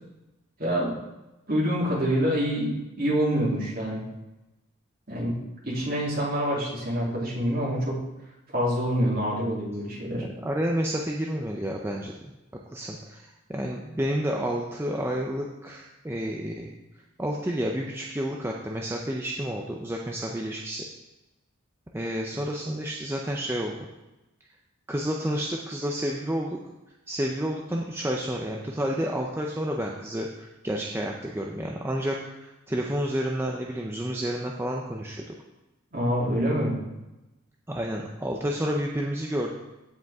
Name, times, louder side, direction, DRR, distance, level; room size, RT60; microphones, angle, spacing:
voice 1, 0.6-0.9 1.5-4.0 5.1-5.4 5.6-8.0 8.5-10.2 35.9-36.8, equal, 45° right, -5 dB, 2.9 m, -26 dB
voice 2, 10.0-12.1 12.7-16.7 17.2-20.8 21.9-23.8 24.9-26.6 27.1-35.2 37.7-39.5, equal, 10° right, 0 dB, 0.5 m, -30 dB
15.5 x 5.2 x 3.6 m, 1.0 s
head